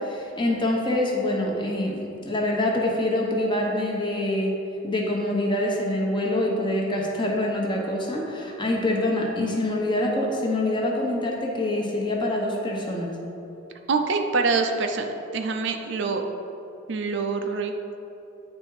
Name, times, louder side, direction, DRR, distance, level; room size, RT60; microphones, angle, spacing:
voice 1, 0.0-1.9 2.2-4.5 4.8-13.1, left 1 dB, 25° left, -1 dB, 0.9 m, -25 dB
voice 2, 13.9-16.2 16.9-17.7, right 4 dB, 65° right, 5 dB, 0.5 m, -25 dB
9.5 x 3.4 x 4.8 m, 2.9 s
head